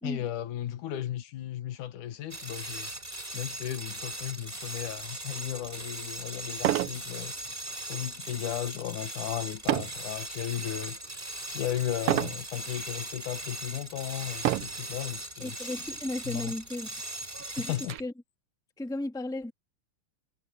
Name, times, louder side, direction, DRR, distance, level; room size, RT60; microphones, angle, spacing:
voice 1, 0.0-2.9 3.3-7.3 7.8-11.1 11.5-15.7 16.2-16.5 17.7-17.9, left 11 dB, 85° left, 2.8 m, -35 dB
sound 1, 2.3-18.0, right 2 dB, 15° right, 3.9 m, -39 dB
sound 2, 5.6-5.7 6.6-7.0 7.5-7.8 9.7-10.0 10.7-11.1 12.1-12.4 13.2-13.3 14.4-14.9 15.9-16.0 16.3-16.4 16.9-18.0, right 14 dB, 75° right, 1.4 m, -29 dB
voice 2, 15.4-16.9 17.5-18.1 18.8-19.5, left 1 dB, ahead, 1.3 m, -35 dB
omnidirectional pair, 3.4 m